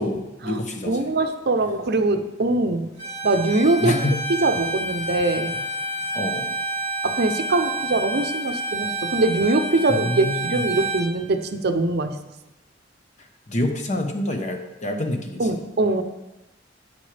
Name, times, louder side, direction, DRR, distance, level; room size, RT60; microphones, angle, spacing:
voice 1, 0.0-1.0 3.8-4.2 6.1-6.5 9.9-10.6 13.5-15.4, left 1 dB, 40° left, 4 dB, 1.0 m, -26 dB
voice 2, 0.9-2.9 3.2-4.0 4.4-5.6 7.0-12.1 15.4-16.0, right 2 dB, 60° right, 8 dB, 0.7 m, -22 dB
Bowed string instrument, 3.0-11.1, right 2 dB, 20° left, 2.7 m, -29 dB
9.4 x 8.9 x 3.4 m, 1.0 s
head